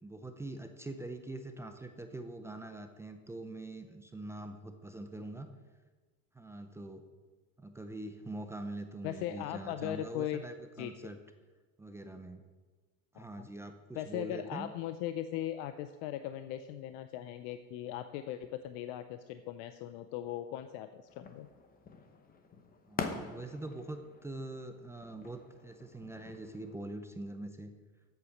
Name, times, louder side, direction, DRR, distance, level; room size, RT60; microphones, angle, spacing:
voice 1, 0.0-5.5 6.3-7.0 7.6-11.2 11.8-12.4 13.1-14.7 22.9-27.7, right 2 dB, 5° right, 6 dB, 0.5 m, -44 dB
voice 2, 9.0-10.4 10.8-10.9 13.2-13.5 13.9-21.5, left 12 dB, 55° left, 10 dB, 0.6 m, -39 dB
sound 1, 21.1-26.7, left 5 dB, 20° left, 0.9 m, -45 dB
8.2 x 8.1 x 7.1 m, 1.3 s
supercardioid pair, 130°, 42 cm